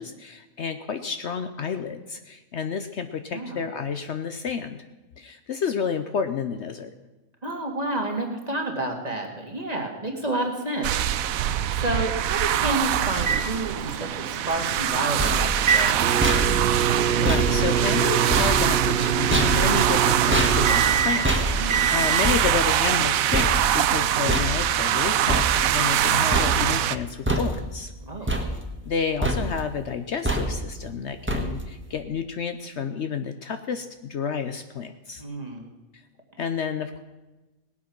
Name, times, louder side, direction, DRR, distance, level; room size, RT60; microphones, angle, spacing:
voice 1, 0.0-4.9 5.2-6.9 17.1-27.9 28.2-28.4 28.9-35.2 36.4-37.0, left 6 dB, 60° left, 8 dB, 0.9 m, -30 dB
voice 2, 3.3-3.6 7.4-10.9 11.7-16.1 21.6-21.9 28.1-28.3 35.2-35.7, right 1 dB, 30° right, 2 dB, 1.9 m, -30 dB
sound 1, 10.8-27.0, right 11 dB, 80° right, 1.0 m, -24 dB
sound 2, 13.2-22.3, right 7 dB, 55° right, 0.9 m, -26 dB
sound 3, 15.0-26.0 26.3-26.9 27.3-27.9 28.3-29.0 29.2-29.7 30.2-30.8 31.3-31.8, right 1 dB, 10° right, 1.3 m, -28 dB
19.0 x 8.4 x 6.0 m, 1.1 s
omnidirectional pair, 1.4 m